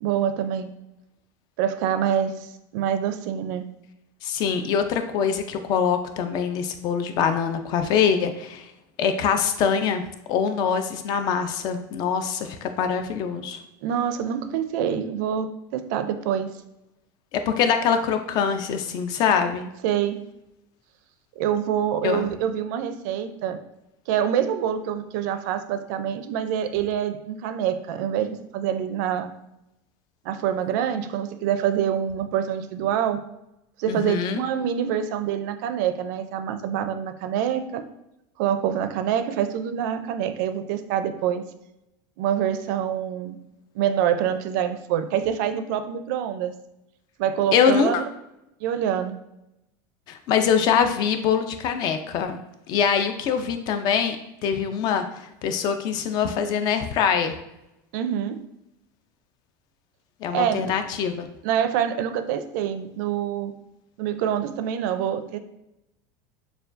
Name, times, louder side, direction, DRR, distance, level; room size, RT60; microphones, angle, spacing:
voice 1, 0.0-0.7 1.6-3.7 13.8-15.5 15.7-16.5 19.8-20.2 21.4-23.6 24.1-29.3 30.2-33.2 33.8-37.8 38.4-41.4 42.2-43.4 43.7-46.5 47.2-48.0 48.6-49.2 57.9-58.4 60.3-60.7 61.4-63.5 64.0-65.4, right 9 dB, 65° right, 10 dB, 0.4 m, -26 dB
voice 2, 4.2-8.7 9.0-10.0 10.3-13.6 17.3-19.7 22.0-22.3 33.9-34.4 47.5-47.9 50.1-52.4 52.7-54.2 54.4-55.0 55.4-57.4 60.2-61.3, left 7 dB, 40° left, 8 dB, 0.4 m, -23 dB
6.7 x 2.3 x 2.5 m, 0.88 s
supercardioid pair, 155°, 10 cm